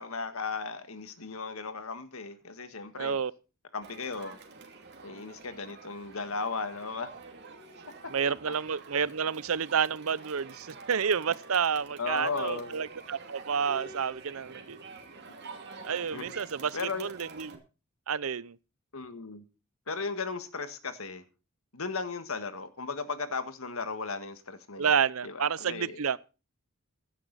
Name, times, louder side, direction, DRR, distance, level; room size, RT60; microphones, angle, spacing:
voice 1, 0.0-3.2 3.7-4.4 5.0-7.1 8.0-8.5 12.0-12.8 16.1-16.3 16.7-17.1 18.9-19.5 19.9-21.2 21.7-24.9 25.2-26.0, left 4 dB, 80° left, 1.6 m, -36 dB
voice 2, 3.0-3.3 8.1-14.8 15.8-16.7 17.0-17.6 18.1-18.6 24.8-26.2, right 6 dB, 80° right, 0.7 m, -29 dB
Crowd, 3.8-17.5, right 4 dB, 55° right, 2.7 m, -48 dB
16.0 x 11.0 x 4.0 m
head